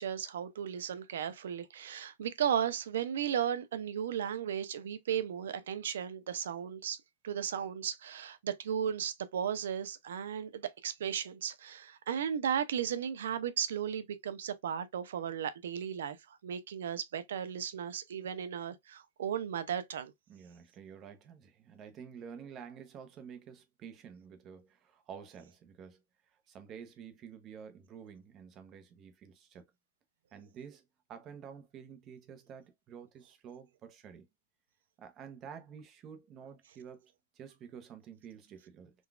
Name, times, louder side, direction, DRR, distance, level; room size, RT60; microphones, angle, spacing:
voice 1, 0.0-7.0 7.2-20.1, right 8 dB, 75° right, 0.5 m, -35 dB
voice 2, 20.3-26.0 26.5-29.7 30.3-34.3 35.0-38.9, right 7 dB, 25° right, 0.7 m, -50 dB
3.8 x 2.3 x 2.3 m
hypercardioid pair, 145°, 0 cm